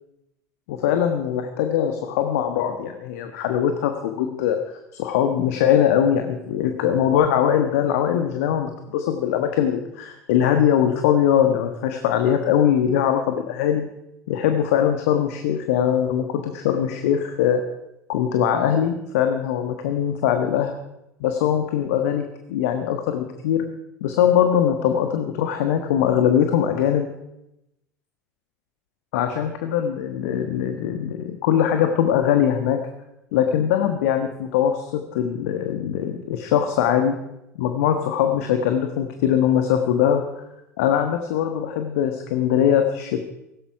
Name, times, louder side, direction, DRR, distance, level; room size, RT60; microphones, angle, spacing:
voice 1, 0.7-13.9 14.3-17.6 18.1-20.8 21.2-23.7 24.0-27.1 29.1-32.8 33.3-37.2 37.5-40.2 40.8-43.2, left 9 dB, 60° left, 6 dB, 1.4 m, -21 dB
18.0 x 16.5 x 4.8 m, 0.87 s
figure-of-eight pair, 70°, 9 cm